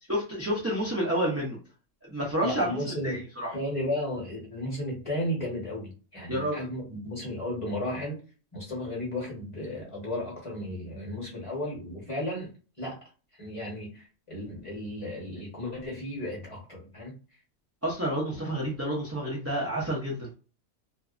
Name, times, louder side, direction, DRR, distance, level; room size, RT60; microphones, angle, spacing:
voice 1, 0.1-1.6 2.1-3.5 6.3-6.6 17.8-20.3, right 1 dB, 20° right, -4 dB, 0.4 m, -29 dB
voice 2, 2.4-8.2 8.5-12.5 12.8-13.0 13.4-17.2, left 1 dB, 25° left, -3 dB, 1.0 m, -34 dB
2.6 x 2.2 x 2.4 m, 0.35 s
omnidirectional pair, 1.5 m